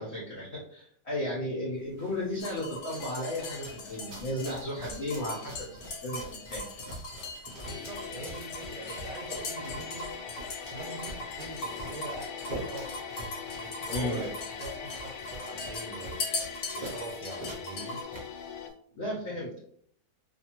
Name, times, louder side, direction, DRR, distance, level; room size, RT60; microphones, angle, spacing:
voice 1, 0.0-6.8 13.9-14.3 18.9-19.5, left 1 dB, 55° left, -5 dB, 0.8 m, -34 dB
sound 1, 1.7-18.7, right 2 dB, 45° right, 0.7 m, -46 dB
sound 2, 2.4-18.0, left 3 dB, 70° left, 1.1 m, -40 dB
sound 3, 7.6-18.7, left 7 dB, 85° left, 1.2 m, -42 dB
voice 2, 7.6-10.1 10.7-12.9 13.5-16.3 16.7-18.0, right 2 dB, 85° right, 2 dB, 1.3 m, -42 dB
2.6 x 2.5 x 2.8 m, 0.63 s
omnidirectional pair, 1.8 m